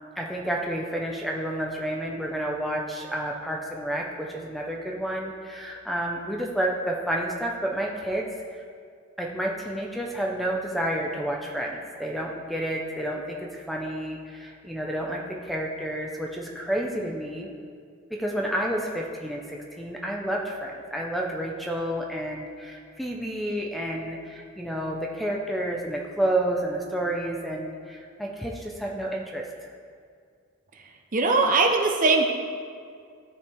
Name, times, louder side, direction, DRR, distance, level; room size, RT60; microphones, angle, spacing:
voice 1, 0.2-8.3 9.2-17.5 18.1-29.4, right 1 dB, ahead, -1 dB, 0.6 m, -30 dB
voice 2, 31.1-32.3, right 3 dB, 35° right, 3 dB, 0.7 m, -20 dB
14.5 x 4.9 x 3.6 m, 2.2 s
head